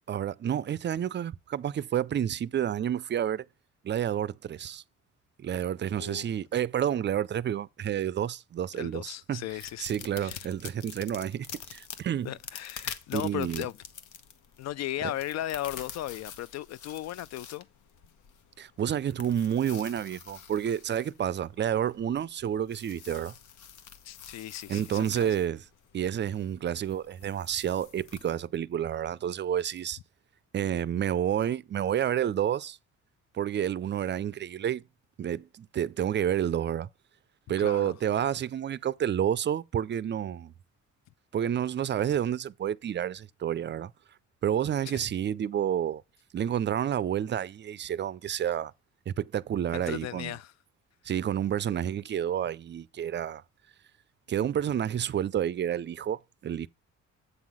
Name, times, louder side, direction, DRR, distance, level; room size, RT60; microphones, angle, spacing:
voice 1, 0.1-3.4 3.8-4.8 5.4-9.4 9.8-12.3 13.1-13.6 15.0-15.1 18.6-23.3 24.7-25.6 25.9-30.0 30.5-32.8 33.3-34.8 35.2-36.9 37.5-40.5 41.3-43.9 44.4-46.0 46.3-48.7 49.1-50.3 51.0-53.4 54.3-56.7, right 9 dB, 40° right, 0.4 m, -29 dB
voice 2, 6.0-6.3 8.7-9.9 10.2-10.5 12.2-13.8 14.6-17.7 24.0-25.2 37.6-37.9 44.9-45.1 49.7-50.5, left 13 dB, 60° left, 0.5 m, -36 dB
sound 1, 9.5-28.4, left 8 dB, 75° left, 0.9 m, -47 dB
8.1 x 3.8 x 6.1 m
cardioid pair, 90°, 30 cm